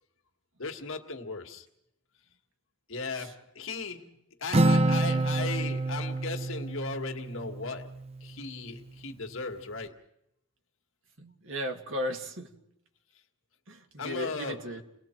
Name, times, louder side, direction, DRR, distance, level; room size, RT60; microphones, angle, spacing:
voice 1, 0.6-1.7 2.9-4.1 4.4-7.9 8.2-10.0 14.0-14.8, left 4 dB, 75° left, 1.8 m, -37 dB
Acoustic guitar, 4.5-8.2, right 2 dB, 30° right, 0.7 m, -27 dB
voice 2, 11.2-12.5 13.7-14.8, equal, 70° right, 2.0 m, -36 dB
29.5 x 19.5 x 4.5 m
head